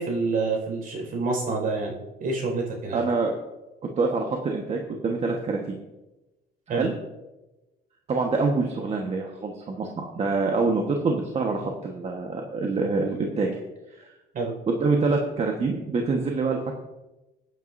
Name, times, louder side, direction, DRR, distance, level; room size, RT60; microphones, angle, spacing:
voice 1, 0.0-1.9 2.2-3.0 6.7-6.9 14.3-14.5, right 3 dB, 55° right, 0 dB, 5.2 m, -27 dB
voice 2, 2.9-3.3 3.8-5.7 6.7-6.9 8.1-13.6 13.9-14.1 14.7-16.7, right 3 dB, 40° right, 1 dB, 1.4 m, -26 dB
23.0 x 9.3 x 2.7 m, 1.0 s
cardioid pair, 110°, 17 cm